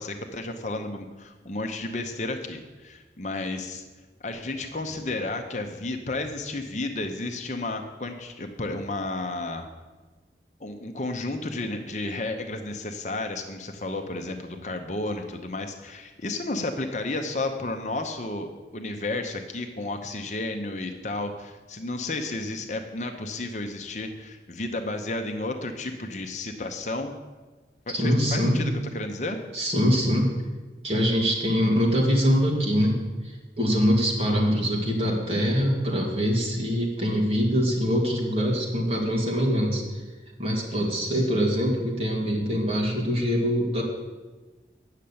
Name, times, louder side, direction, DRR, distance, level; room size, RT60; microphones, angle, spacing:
voice 1, 0.0-3.8 4.2-9.7 10.6-27.1 27.9-29.4 40.7-41.3, left 2 dB, 40° left, 5 dB, 0.8 m, -32 dB
voice 2, 27.9-28.6 29.5-30.4 30.8-40.0 40.4-43.8, equal, 35° right, -2 dB, 2.4 m, -24 dB
9.1 x 6.7 x 8.6 m, 1.3 s
head